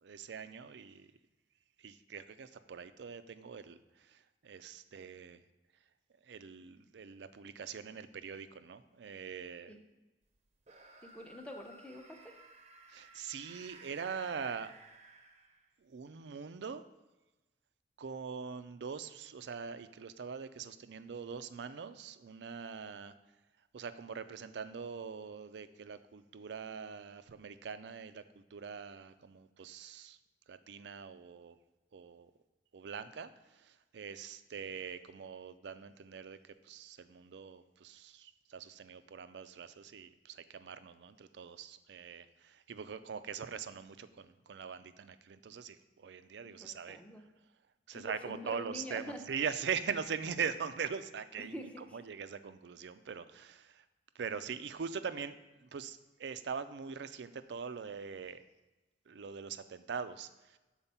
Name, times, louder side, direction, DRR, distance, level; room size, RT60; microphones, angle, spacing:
voice 1, 0.0-1.1 1.8-3.8 4.4-5.4 6.3-9.7 12.9-14.7 15.8-16.8 18.0-23.1 23.7-28.2 28.5-30.2 30.5-31.6 31.9-32.3 32.7-33.3 33.7-36.4 36.6-47.0 47.9-53.8 54.2-55.4 55.6-58.4 59.1-60.6, right 6 dB, 70° right, 12 dB, 0.4 m, -42 dB
sound 1, 10.6-15.8, right 3 dB, 35° right, 0.7 m, -57 dB
voice 2, 11.0-12.3 46.6-47.2 47.9-49.2 51.5-52.0, left 1 dB, 5° left, 3 dB, 0.7 m, -46 dB
7.2 x 4.3 x 5.5 m, 1.1 s
head